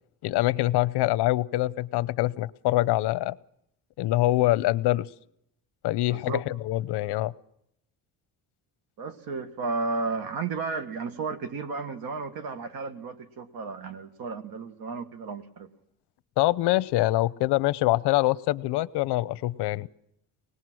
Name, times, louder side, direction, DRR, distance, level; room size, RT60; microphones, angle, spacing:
voice 1, 0.2-3.4 4.0-5.1 5.8-7.3 16.4-19.9, left 17 dB, 80° left, 18 dB, 0.7 m, -24 dB
voice 2, 6.1-6.4 9.0-15.7, right 4 dB, 60° right, 9 dB, 1.9 m, -33 dB
25.0 x 19.5 x 6.2 m, 0.76 s
cardioid pair, 165°, 39 cm